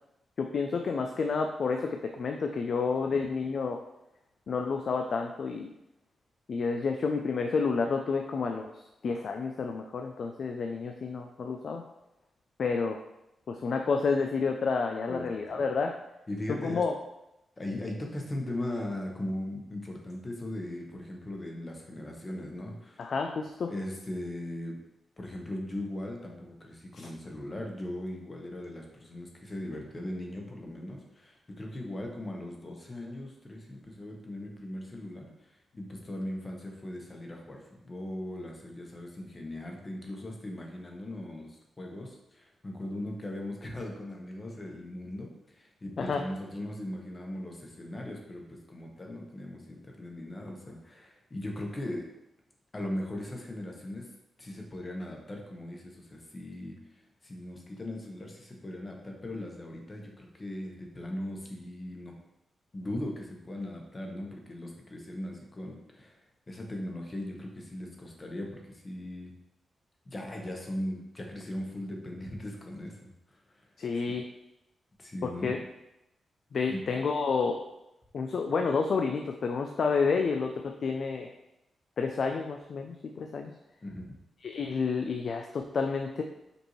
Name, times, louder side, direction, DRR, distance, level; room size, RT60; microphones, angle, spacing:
voice 1, 0.4-3.8 4.5-5.7 6.5-11.8 12.6-13.0 13.5-15.9 16.5-16.9 23.0-23.7 46.0-46.2 73.8-74.3 75.2-75.6 76.5-77.6 78.1-81.3 82.0-83.5 84.4-86.2, left 4 dB, 60° left, 3 dB, 0.3 m, -30 dB
voice 2, 15.1-15.6 16.3-16.8 17.6-23.1 23.7-24.8 25.2-52.1 52.7-54.1 54.4-56.8 57.2-62.2 62.7-66.2 66.5-69.3 70.0-73.6 75.0-75.6 76.7-76.8 83.8-84.2, left 1 dB, 30° left, 1 dB, 1.0 m, -39 dB
5.2 x 2.6 x 3.1 m, 0.89 s
cardioid pair, 75°, 0 cm